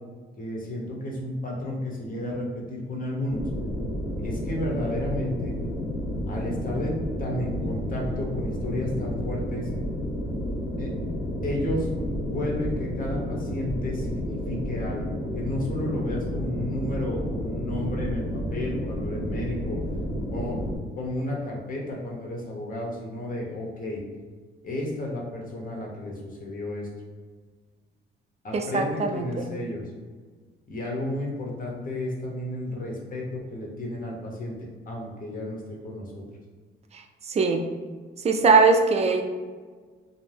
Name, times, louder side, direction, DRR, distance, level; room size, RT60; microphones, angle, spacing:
voice 1, 0.4-3.5 4.2-5.5 6.3-9.7 10.8-10.9 11.4-19.8 20.3-20.6 21.0-24.0 24.6-26.9 28.4-29.8 30.7-36.2, left 1 dB, 45° left, -2 dB, 0.8 m, -32 dB
sound 1, 3.3-20.8, equal, 85° left, 1.0 m, -31 dB
voice 2, 28.5-29.5 37.3-37.6 38.2-39.2, right 4 dB, 35° right, 4 dB, 0.3 m, -21 dB
2.6 x 2.1 x 3.2 m, 1.5 s
cardioid pair, 95°, 20 cm